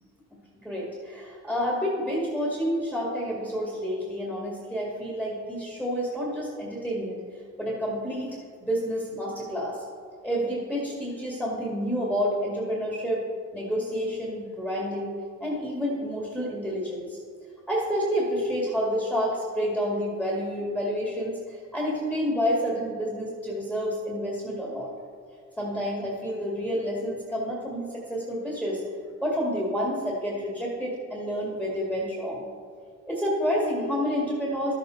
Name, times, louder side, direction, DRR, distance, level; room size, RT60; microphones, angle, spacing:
voice 1, 0.6-7.2 7.6-9.8 10.2-13.2 13.5-15.1 15.4-17.2 17.7-24.9 25.6-28.8 29.2-32.5 33.1-34.7, equal, 5° right, -4 dB, 2.0 m, -29 dB
12.5 x 7.2 x 3.9 m, 2.1 s
cardioid pair, 90°, 30 cm